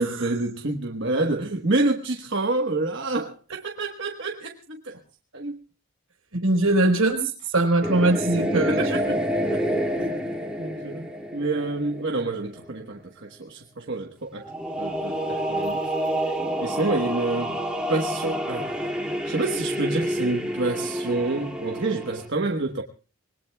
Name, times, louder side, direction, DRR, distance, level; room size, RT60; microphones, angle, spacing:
voice 1, 0.0-4.9 5.3-5.5 8.5-9.2 9.5-9.7 10.0-10.2 10.6-14.4 14.8-15.8 16.6-17.6 17.9-18.7 19.3-22.8, right 2 dB, 55° right, 1.3 m, -28 dB
voice 2, 6.3-8.8, right 2 dB, 85° right, 4.7 m, -21 dB
sound 1, 7.8-12.4 14.4-22.3, equal, 5° right, 2.6 m, -28 dB
25.0 x 20.5 x 2.3 m
head